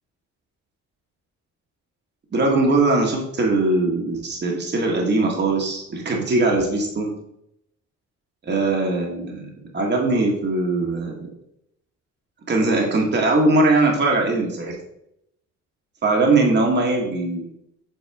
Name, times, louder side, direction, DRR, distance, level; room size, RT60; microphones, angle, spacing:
voice 1, 2.3-7.1 8.4-11.3 12.5-14.8 16.0-17.5, right 2 dB, 35° right, 0 dB, 1.5 m, -20 dB
7.6 x 4.1 x 3.5 m, 0.77 s
cardioid pair, 90°, 30 cm